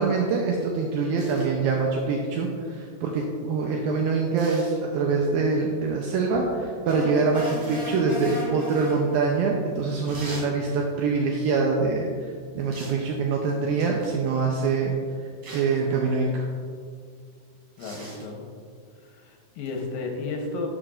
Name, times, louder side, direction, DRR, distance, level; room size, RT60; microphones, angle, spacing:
voice 1, 0.0-14.9 15.5-16.5, right 4 dB, 80° right, 0 dB, 2.1 m, -24 dB
sound 1, 1.2-1.5 4.4-4.8 7.4-7.9 10.1-10.5 12.7-13.0 13.8-14.2 15.4-15.8 17.8-18.3 19.7-19.8, right 1 dB, 50° right, 3.1 m, -41 dB
sound 2, 6.8-9.5, left 1 dB, 20° right, 0.8 m, -35 dB
voice 2, 17.8-18.4 19.1-20.7, left 3 dB, 75° left, 1 dB, 2.4 m, -33 dB
12.0 x 6.8 x 2.5 m, 2.1 s
omnidirectional pair, 4.7 m